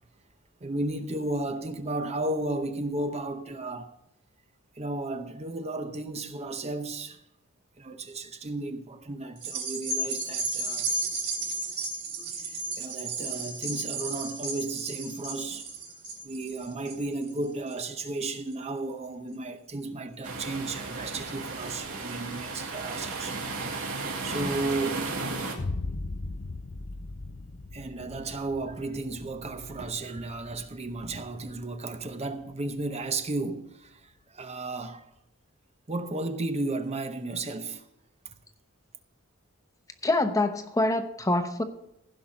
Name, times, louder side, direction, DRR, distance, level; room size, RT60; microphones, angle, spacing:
voice 1, 0.6-3.9 4.8-7.2 7.8-10.9 12.4-15.7 16.2-24.0 24.2-25.2 27.7-35.1 35.9-37.9, right 2 dB, 30° right, 0.7 m, -34 dB
sound 1, 9.4-18.0 18.5-18.6, right 3 dB, 55° right, 3.2 m, -33 dB
sound 2, 20.2-25.6, right 3 dB, 85° right, 2.2 m, -34 dB
Boom, 25.6-33.4, left 2 dB, 45° left, 0.6 m, -39 dB
voice 2, 40.0-41.6, left 2 dB, 15° left, 0.9 m, -25 dB
15.5 x 5.6 x 6.3 m
head